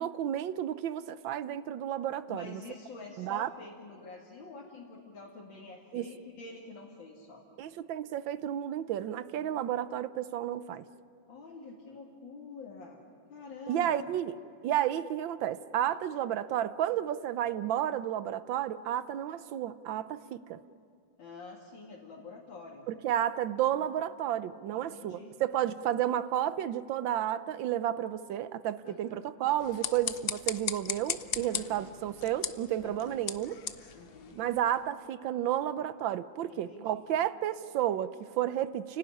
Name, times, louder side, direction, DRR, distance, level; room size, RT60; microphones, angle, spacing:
voice 1, 0.0-2.6 3.2-3.5 5.9-6.1 7.6-10.8 13.7-14.3 14.6-20.6 22.9-33.6 34.4-39.0, right 11 dB, 85° right, 14 dB, 1.5 m, -32 dB
voice 2, 2.3-7.4 11.3-13.0 13.3-14.1 21.2-22.8 24.7-25.3 28.8-29.3 31.5-32.0 32.8-33.2 33.9-34.4 36.5-37.0, left 3 dB, 85° left, -2 dB, 3.0 m, -47 dB
sound 1, 29.5-34.8, left 7 dB, 70° left, 0.5 m, -38 dB
30.0 x 17.5 x 10.0 m, 2.5 s
omnidirectional pair, 2.0 m